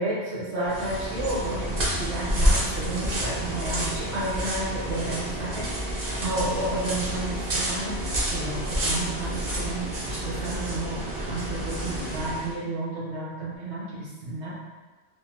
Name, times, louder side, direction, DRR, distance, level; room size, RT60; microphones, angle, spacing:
voice 1, 0.0-14.5, right 1 dB, 70° right, -6 dB, 1.3 m, -32 dB
sound 1, 0.6-12.5, right 1 dB, 50° right, 0.9 m, -29 dB
3.4 x 2.5 x 2.7 m, 1.3 s
omnidirectional pair, 1.2 m